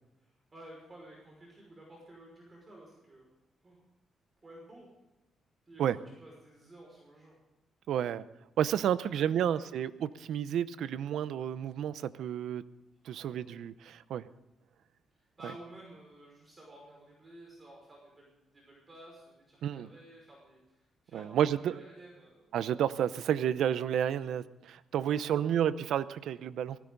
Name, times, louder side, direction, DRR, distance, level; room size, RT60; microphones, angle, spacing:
voice 1, 0.2-3.3 3.6-3.8 4.4-4.9 5.7-7.4 9.1-9.9 13.1-13.6 15.1-22.5 25.1-25.6, right 1 dB, 25° right, -2 dB, 5.6 m, -53 dB
voice 2, 7.9-8.2 8.6-12.6 13.1-14.2 19.6-19.9 21.1-21.8 22.5-26.8, right 9 dB, 80° right, 15 dB, 0.7 m, -31 dB
19.0 x 16.0 x 4.0 m, 0.95 s
cardioid pair, 120°, 0 cm